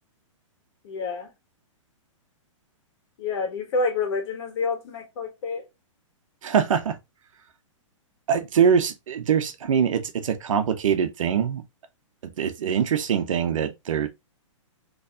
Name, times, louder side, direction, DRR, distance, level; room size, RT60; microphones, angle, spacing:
voice 1, 0.8-1.3 3.2-5.6, left 4 dB, 55° left, 1.5 m, -28 dB
voice 2, 6.4-7.0 8.3-11.6 12.2-14.1, right 7 dB, 75° right, 0.8 m, -23 dB
4.1 x 3.2 x 2.4 m
hypercardioid pair, 150°, 17 cm